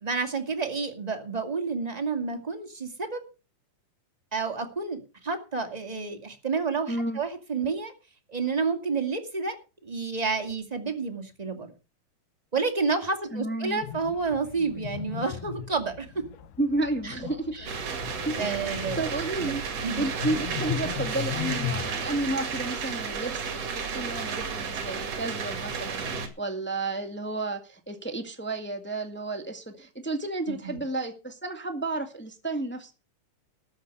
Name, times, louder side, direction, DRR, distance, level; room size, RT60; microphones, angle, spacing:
voice 1, 0.0-3.3 4.3-7.9 8.3-11.7 12.5-16.3 17.0-17.1 17.5-17.8 18.4-19.0 19.4-19.5 19.8-20.0 30.5-30.8, right 4 dB, 15° right, 5 dB, 1.8 m, -30 dB
voice 2, 6.9-7.2 13.3-13.8 16.6-17.5 18.2-18.5 18.9-19.6 20.0-32.9, right 2 dB, 5° left, 5 dB, 1.2 m, -32 dB
sound 1, 13.8-22.6, left 10 dB, 80° left, 2.6 m, -37 dB
sound 2, 17.7-26.3, right 6 dB, 50° right, 3.0 m, -33 dB
13.5 x 8.3 x 6.7 m, 0.32 s
omnidirectional pair, 3.8 m